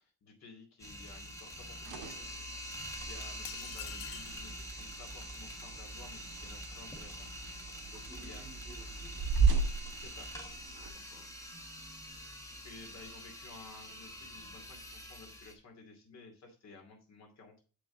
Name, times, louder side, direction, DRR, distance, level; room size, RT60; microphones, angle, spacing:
voice 1, 0.0-2.3 2.7-7.3 8.2-8.4 10.0-10.3 12.1-12.2 12.5-17.6, left 3 dB, 45° left, 2.5 m, -54 dB
sound 1, 0.8-15.5, equal, 10° left, 1.4 m, -46 dB
sound 2, 1.5-10.9, right 4 dB, 70° right, 1.7 m, -36 dB
sound 3, 3.4-4.4, left 12 dB, 65° left, 0.5 m, -45 dB
voice 2, 7.7-9.3 10.7-11.4 12.5-12.8, equal, 15° right, 3.3 m, -56 dB
7.7 x 5.3 x 3.8 m
cardioid pair, 145°, 36 cm